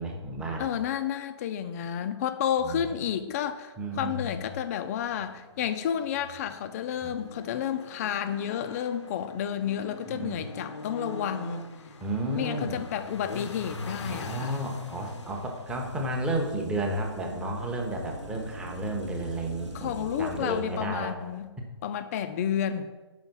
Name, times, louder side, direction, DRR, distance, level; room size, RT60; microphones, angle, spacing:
voice 1, 0.0-0.7 2.6-3.0 3.8-4.4 7.0-7.1 10.1-10.5 12.0-12.8 14.1-21.2, right 1 dB, 5° right, 0.7 m, -32 dB
voice 2, 0.6-11.7 12.3-14.6 19.7-21.5 21.8-22.9, left 9 dB, 35° left, 0.3 m, -31 dB
sound 1, 4.8-21.5, left 2 dB, 80° left, 0.6 m, -44 dB
sound 2, 15.7-20.7, right 2 dB, 90° right, 0.9 m, -43 dB
5.0 x 4.1 x 6.0 m
figure-of-eight pair, 130°, 15 cm